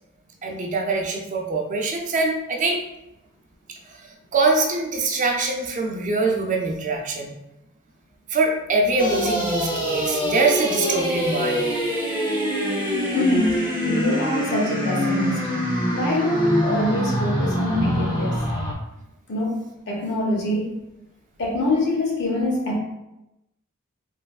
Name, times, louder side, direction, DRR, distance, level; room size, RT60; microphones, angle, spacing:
voice 1, 0.4-2.8 4.3-7.3 8.3-11.7, right 3 dB, 40° right, 1 dB, 0.4 m, -23 dB
sound 1, 9.0-18.7, equal, 20° left, 0.6 m, -25 dB
voice 2, 13.1-13.5 13.8-15.5 15.9-18.4 19.3-19.6 19.9-20.7 21.4-22.8, left 1 dB, 60° left, -2 dB, 0.8 m, -24 dB
3.2 x 2.8 x 2.3 m, 0.91 s
head